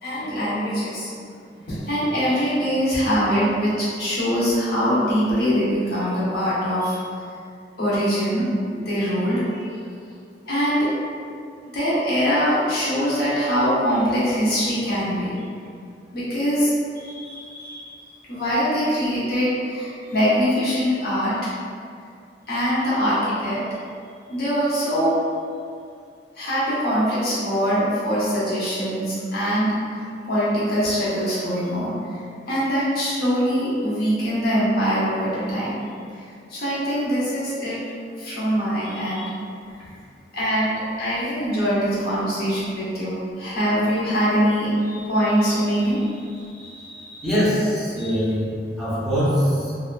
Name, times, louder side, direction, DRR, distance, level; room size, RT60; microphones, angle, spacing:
voice 1, 0.0-1.1 1.5-7.0 7.8-9.7 10.5-10.9 11.7-15.4 16.1-18.0 18.3-21.3 22.5-23.6 24.3-25.1 26.3-35.8 36.1-36.2 36.5-37.8 38.2-39.3 40.3-47.3 48.0-48.2, equal, 60° left, -9 dB, 0.8 m, -23 dB
voice 2, 47.2-48.5 48.8-49.7, equal, ahead, -12 dB, 0.6 m, -22 dB
2.8 x 2.4 x 2.2 m, 2.3 s
head